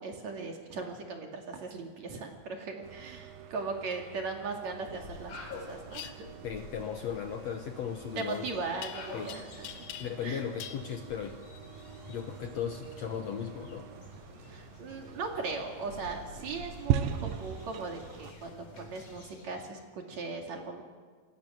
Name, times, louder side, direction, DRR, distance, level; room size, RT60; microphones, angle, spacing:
voice 1, 0.0-6.3 8.2-9.7 10.2-10.4 14.4-20.8, right 4 dB, 55° right, 2 dB, 3.5 m, -38 dB
sound 1, 2.8-18.3, right 10 dB, 85° right, 2.7 m, -41 dB
sound 2, 4.7-19.6, left 2 dB, 50° left, 4.7 m, -49 dB
sound 3, 5.9-6.1 8.8-9.3 9.6-10.3 10.6-10.8, left 10 dB, 85° left, 2.9 m, -43 dB
voice 2, 6.4-8.4 9.1-9.3 10.0-11.4 12.1-13.9, left 8 dB, 65° left, 5 dB, 1.8 m, -36 dB
27.5 x 22.0 x 6.4 m, 1.5 s
omnidirectional pair, 4.1 m